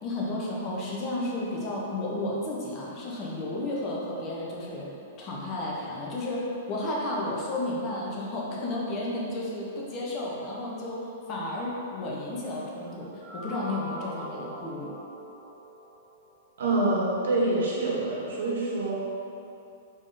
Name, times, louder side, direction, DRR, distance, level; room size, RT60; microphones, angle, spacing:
voice 1, 0.0-4.9 5.2-14.9, left 1 dB, 30° left, -4 dB, 0.6 m, -32 dB
sound 1, 12.8-16.3, right 1 dB, 5° right, 1.2 m, -41 dB
voice 2, 16.6-18.9, right 2 dB, 80° right, -4 dB, 0.9 m, -26 dB
3.6 x 3.5 x 2.6 m, 2.7 s
hypercardioid pair, 155°, 0 cm